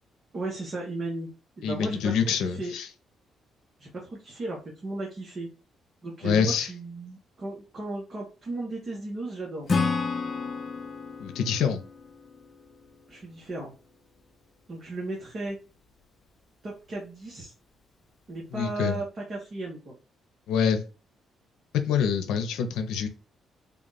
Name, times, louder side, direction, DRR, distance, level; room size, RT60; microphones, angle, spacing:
voice 1, 0.3-1.3 1.6-2.7 3.8-5.5 6.0-9.8 13.1-13.7 14.7-15.6 16.6-17.5 18.3-19.9, right 2 dB, 40° right, -3 dB, 1.2 m, -35 dB
voice 2, 1.6-2.9 6.2-6.7 11.2-11.8 18.5-19.0 20.5-20.8 21.9-23.1, left 7 dB, 85° left, 7 dB, 0.7 m, -26 dB
Acoustic guitar / Strum, 9.7-13.3, left 4 dB, 40° left, 0.6 m, -31 dB
3.5 x 2.4 x 4.0 m, 0.34 s
cardioid pair, 90°, 0 cm